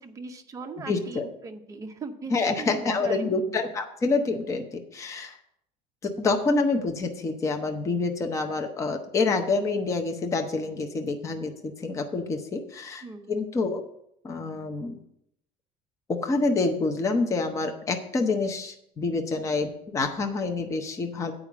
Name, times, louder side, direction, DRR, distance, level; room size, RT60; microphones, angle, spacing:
voice 1, 0.0-3.4 3.6-3.7 13.0-13.4, right 4 dB, 20° right, 5 dB, 0.7 m, -39 dB
voice 2, 0.9-1.2 2.3-5.4 6.0-13.8 14.2-15.0 16.1-21.3, left 3 dB, 20° left, 5 dB, 0.7 m, -27 dB
8.3 x 5.0 x 7.2 m, 0.75 s
cardioid pair, 170°, 17 cm